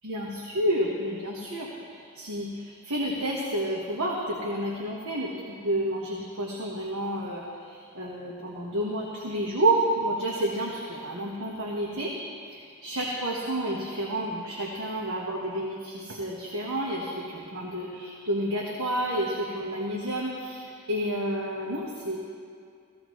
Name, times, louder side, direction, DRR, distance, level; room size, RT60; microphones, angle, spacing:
voice 1, 0.0-12.2 12.4-22.2, right 1 dB, 65° right, -3 dB, 1.4 m, -30 dB
16.5 x 15.5 x 3.2 m, 2.3 s
head